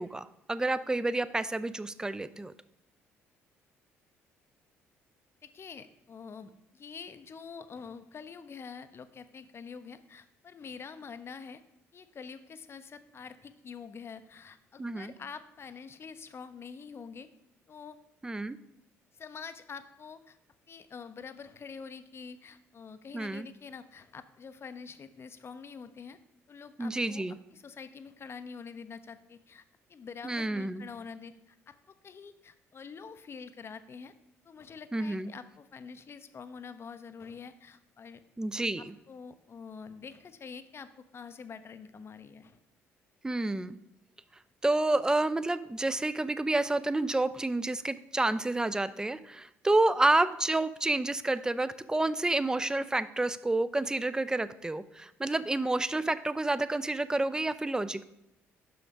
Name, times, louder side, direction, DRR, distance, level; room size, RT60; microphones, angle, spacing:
voice 1, 0.0-2.5 14.8-15.1 18.2-18.6 23.1-23.5 26.8-27.4 30.2-30.8 34.9-35.3 38.4-38.9 43.2-43.8 44.6-58.0, right 2 dB, 10° right, 14 dB, 0.4 m, -29 dB
voice 2, 5.4-11.6 11.9-17.3 17.7-18.0 19.2-20.4 20.7-26.2 26.5-27.2 27.5-29.6 29.9-34.1 34.4-38.2 38.8-42.6, left 5 dB, 35° left, 12 dB, 0.6 m, -46 dB
6.1 x 5.7 x 5.2 m, 0.82 s
figure-of-eight pair, 50°, 7 cm